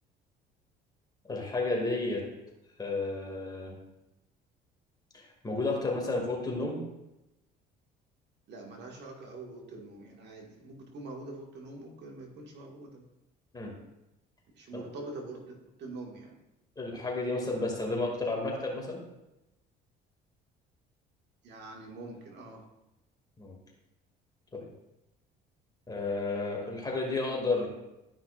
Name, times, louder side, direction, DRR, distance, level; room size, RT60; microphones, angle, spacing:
voice 1, 1.2-2.2 2.8-3.8 5.1-6.8 13.5-13.7 14.7-14.8 16.8-19.0 23.4-23.6 24.5-24.7 25.9-27.7, left 3 dB, 20° left, -1 dB, 2.3 m, -32 dB
voice 2, 8.5-13.0 14.5-16.4 21.4-22.6, right 2 dB, 65° right, 0 dB, 1.8 m, -44 dB
12.5 x 5.6 x 2.5 m, 0.93 s
cardioid pair, 95°, 19 cm